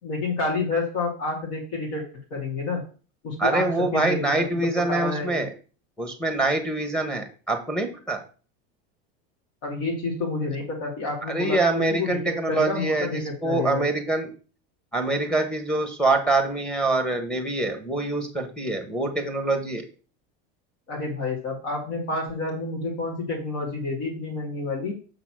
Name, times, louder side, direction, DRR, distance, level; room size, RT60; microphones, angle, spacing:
voice 1, 0.0-2.0 2.3-2.8 3.2-3.7 3.9-4.4 4.9-5.4 9.6-12.2 12.5-13.8 20.9-24.9, left 3 dB, 60° left, -2 dB, 2.6 m, -29 dB
voice 2, 3.4-5.5 6.0-8.2 11.3-14.3 14.9-19.8, right 2 dB, 5° left, 3 dB, 1.2 m, -25 dB
6.6 x 4.0 x 6.2 m, 0.37 s
supercardioid pair, 160°, 30 cm